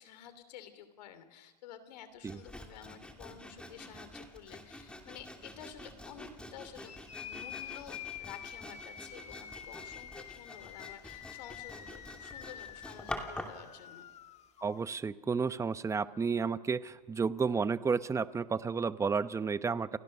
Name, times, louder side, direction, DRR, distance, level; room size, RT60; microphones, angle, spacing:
voice 1, 0.0-6.9 7.2-14.1, left 9 dB, 80° left, 12 dB, 2.9 m, -51 dB
Sawing, 2.3-13.6, left 1 dB, 5° left, 2.8 m, -47 dB
sound 1, 6.9-14.8, left 10 dB, 30° left, 1.4 m, -47 dB
voice 2, 14.6-20.0, right 5 dB, 15° right, 14 dB, 0.8 m, -32 dB
29.5 x 24.0 x 6.7 m, 1.4 s
hypercardioid pair, 115°, 21 cm